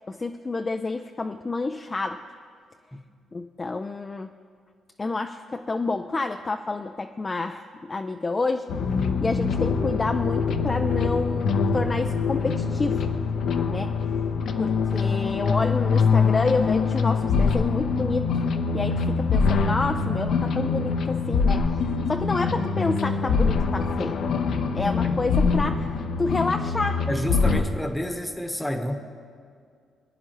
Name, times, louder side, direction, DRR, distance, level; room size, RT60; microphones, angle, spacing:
voice 1, 0.1-2.2 3.3-4.3 5.0-8.7 9.2-13.0 13.6-13.9 14.6-18.3 18.7-21.7 22.1-24.2 24.7-25.9 26.2-27.1, left 3 dB, 25° left, 6 dB, 0.4 m, -28 dB
sound 1, 8.7-27.6, left 5 dB, 65° left, 0.7 m, -24 dB
voice 2, 27.1-29.0, equal, 5° left, 6 dB, 1.0 m, -29 dB
22.0 x 9.8 x 3.0 m, 2.2 s
cardioid pair, 90°, 0 cm